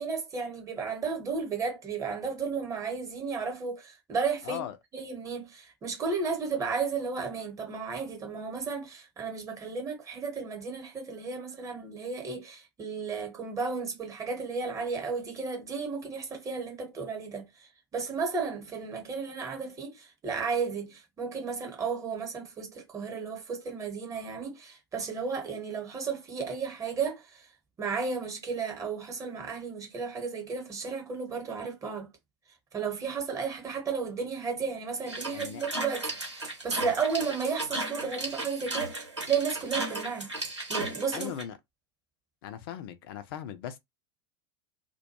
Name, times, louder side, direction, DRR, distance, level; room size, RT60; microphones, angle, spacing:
voice 1, 0.0-4.6 4.9-27.5 27.8-32.1 32.7-40.3 40.7-41.3, right 5 dB, 20° right, 1.0 m, -33 dB
voice 2, 4.4-4.8 35.3-35.6 41.1-41.5 42.4-43.8, left 10 dB, 55° left, 0.5 m, -38 dB
sound 1, 35.1-41.4, right 2 dB, 90° right, 1.0 m, -35 dB
2.2 x 2.2 x 2.8 m
figure-of-eight pair, 85°, 14 cm